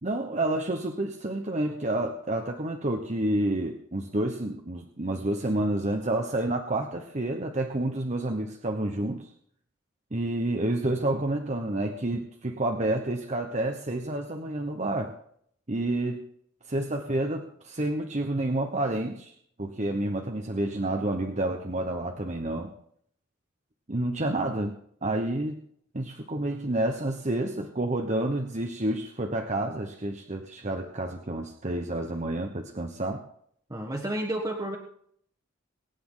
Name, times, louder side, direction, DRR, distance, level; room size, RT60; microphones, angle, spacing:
voice 1, 0.0-9.3 10.1-15.1 15.7-16.2 16.7-19.3 19.6-22.7 23.9-24.7 25.0-25.6 25.9-33.2, right 1 dB, 35° right, 4 dB, 1.1 m, -29 dB
voice 2, 33.7-34.8, right 1 dB, 20° right, 0 dB, 1.5 m, -31 dB
23.0 x 9.5 x 3.9 m, 0.65 s
head